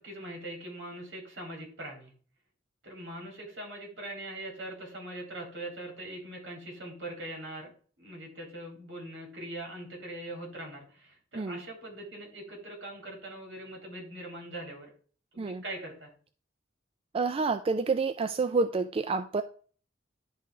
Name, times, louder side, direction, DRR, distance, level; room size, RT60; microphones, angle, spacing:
voice 1, 0.0-2.1 2.8-7.7 8.0-14.9 15.3-16.1, right 1 dB, 75° right, 0 dB, 3.4 m, -42 dB
voice 2, 17.1-19.4, right 4 dB, 30° right, 9 dB, 0.3 m, -28 dB
11.0 x 3.8 x 3.6 m, 0.43 s
head